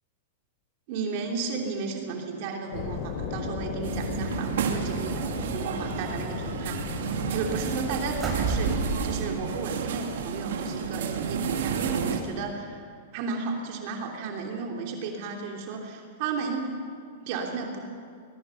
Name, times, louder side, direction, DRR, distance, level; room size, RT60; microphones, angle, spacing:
voice 1, 0.9-6.8 7.3-12.8 13.1-16.7 17.2-17.8, right 4 dB, 55° right, 1 dB, 3.2 m, -33 dB
sound 1, 2.7-7.8, left 5 dB, 50° left, 3.0 m, -36 dB
sound 2, 2.7-9.2, right 3 dB, 20° right, 6.8 m, -35 dB
sound 3, 3.8-12.2, right 6 dB, 80° right, 2.4 m, -31 dB
22.0 x 21.5 x 5.9 m, 2.2 s
hypercardioid pair, 135°, 0 cm